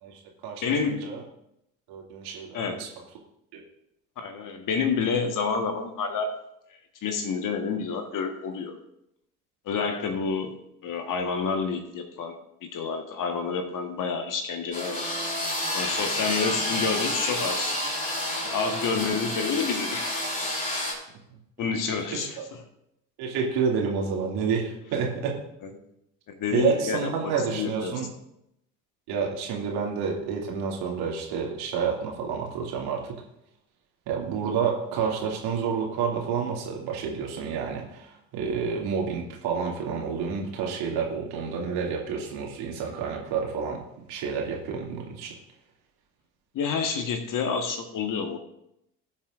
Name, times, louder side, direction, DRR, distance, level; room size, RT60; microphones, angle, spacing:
voice 1, 0.0-1.2 1.9-2.9 3.5-3.6 22.1-22.4 23.2-25.4 26.5-28.1 29.1-33.2 34.1-43.8 44.1-45.4, right 6 dB, 50° right, -1 dB, 2.6 m, -29 dB
voice 2, 0.6-1.1 2.5-2.8 4.2-6.3 7.0-8.8 9.6-10.5 10.8-12.3 12.6-15.1 15.7-17.8 18.4-20.1 21.6-22.4 25.6-25.7 26.3-28.0 46.5-48.4, left 5 dB, 40° left, 6 dB, 1.5 m, -29 dB
sound 1, 14.7-20.9, left 1 dB, 15° left, 3.0 m, -29 dB
18.5 x 7.3 x 2.6 m, 0.79 s
figure-of-eight pair, 60°, 49 cm